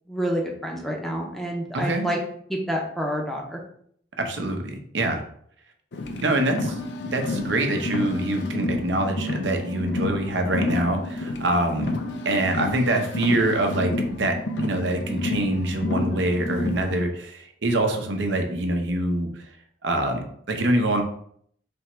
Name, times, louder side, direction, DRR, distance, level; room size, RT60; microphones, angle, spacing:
voice 1, 0.1-2.2 2.5-3.6, equal, ahead, -1 dB, 0.6 m, -28 dB
voice 2, 1.7-2.2 4.2-5.2 6.2-11.9 12.2-19.5 19.8-21.0, right 1 dB, 75° right, 4 dB, 0.7 m, -25 dB
Car, 5.9-17.0, left 2 dB, 70° left, 0.5 m, -30 dB
3.4 x 3.0 x 4.4 m, 0.64 s
head